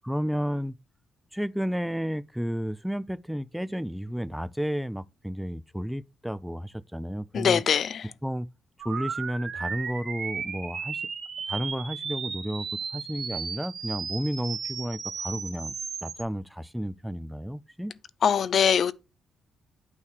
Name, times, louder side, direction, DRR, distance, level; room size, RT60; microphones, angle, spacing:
voice 1, 0.0-0.8 1.3-7.6 8.2-8.5 8.8-11.0 11.5-15.7 16.0-17.9, equal, ahead, 0.4 m, -32 dB
voice 2, 7.3-8.1 18.2-18.9, left 8 dB, 55° left, 0.5 m, -22 dB
sound 1, 8.8-16.2, right 6 dB, 50° right, 1.8 m, -35 dB
8.6 x 3.2 x 6.2 m
cardioid pair, 90°, 0 cm